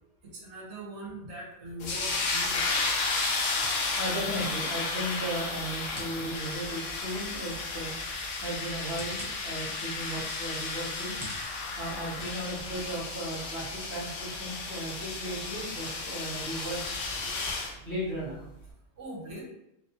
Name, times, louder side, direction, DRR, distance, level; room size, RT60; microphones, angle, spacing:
voice 1, 0.2-2.9 9.4-9.7 19.0-19.4, right 1 dB, 65° right, -2 dB, 1.0 m, -42 dB
sound 1, 1.8-17.7, left 3 dB, 80° left, 0.9 m, -33 dB
sound 2, 1.8-12.8, equal, 20° right, 0.6 m, -52 dB
voice 2, 3.7-7.9 8.4-11.2 11.7-17.0 17.8-18.4, right 1 dB, 60° left, -9 dB, 1.6 m, -36 dB
3.1 x 2.0 x 2.8 m, 0.82 s
omnidirectional pair, 1.3 m